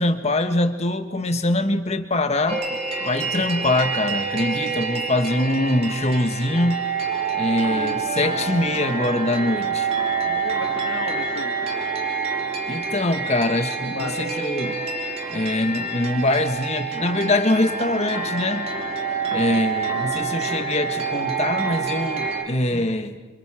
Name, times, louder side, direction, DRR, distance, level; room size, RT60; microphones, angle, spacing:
voice 1, 0.0-2.6 3.1-6.8 7.3-9.9 10.2-10.4 12.7-14.8 15.3-18.7 19.3-23.2, left 1 dB, 30° left, 7 dB, 1.4 m, -23 dB
sound 1, 2.5-22.4, right 5 dB, 30° right, 2.4 m, -27 dB
voice 2, 10.3-11.7 13.9-14.5 19.2-19.5, left 3 dB, 70° left, 1 dB, 1.6 m, -35 dB
29.0 x 27.0 x 5.0 m, 1.3 s
head